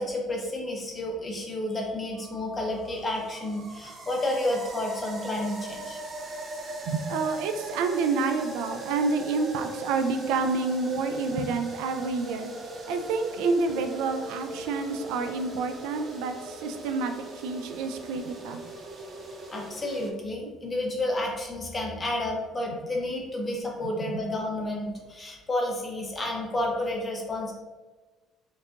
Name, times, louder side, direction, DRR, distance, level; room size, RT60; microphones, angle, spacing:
voice 1, 0.0-6.0 19.5-27.5, left 1 dB, 20° left, -1 dB, 0.6 m, -31 dB
sound 1, 2.2-20.1, right 1 dB, 35° right, 0.5 m, -39 dB
voice 2, 6.9-12.5 12.9-18.7 24.0-24.2, right 4 dB, 90° right, 7 dB, 0.3 m, -29 dB
4.5 x 2.8 x 2.4 m, 1.3 s
cardioid pair, 145°, 0 cm